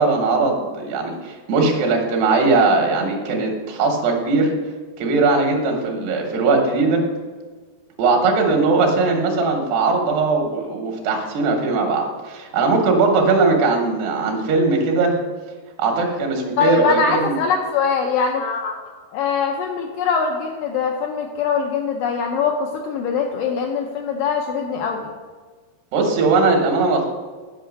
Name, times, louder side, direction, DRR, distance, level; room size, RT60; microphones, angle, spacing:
voice 1, 0.0-4.5 5.0-7.0 8.0-15.1 15.8-17.4 25.9-27.1, right 3 dB, 80° right, 1 dB, 3.2 m, -19 dB
voice 2, 16.6-18.8 19.1-25.1, left 6 dB, 80° left, 2 dB, 2.0 m, -22 dB
9.1 x 5.5 x 6.4 m, 1.4 s
omnidirectional pair, 4.7 m